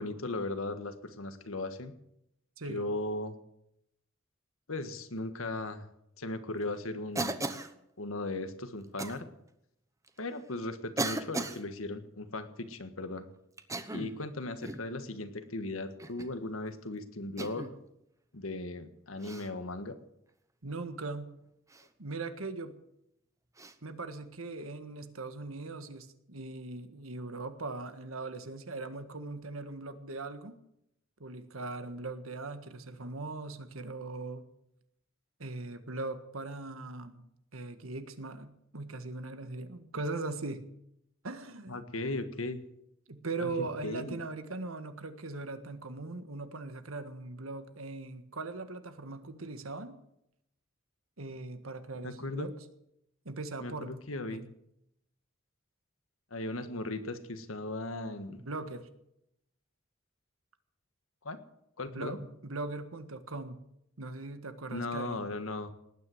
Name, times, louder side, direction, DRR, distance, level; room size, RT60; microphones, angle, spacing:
voice 1, 0.0-1.9 2.7-3.3 4.7-5.9 6.2-7.4 8.0-9.3 10.2-13.3 13.9-17.7 18.3-20.0 41.7-42.6 43.4-44.2 51.9-52.5 53.6-54.5 56.3-58.4 61.2-61.4 61.8-62.2 64.7-65.7, left 2 dB, 80° left, 10 dB, 1.6 m, -37 dB
voice 2, 2.6-2.9 20.6-21.3 22.0-22.7 23.8-30.6 31.2-34.5 35.4-37.2 37.5-40.7 41.2-41.8 43.1-50.0 51.2-52.5 53.2-54.0 54.3-54.4 58.4-58.9 61.9-63.6 64.0-65.2, right 3 dB, 85° right, 9 dB, 1.6 m, -40 dB
Cough, 7.2-7.7 9.0-9.2 10.1-10.2 11.0-11.6 13.6-14.2 14.6-14.9 16.0-16.3 17.4-17.7 19.2-19.5 21.7-21.9 23.6-23.7, right 2 dB, 15° right, 1.1 m, -36 dB
19.0 x 9.7 x 7.9 m, 0.79 s
head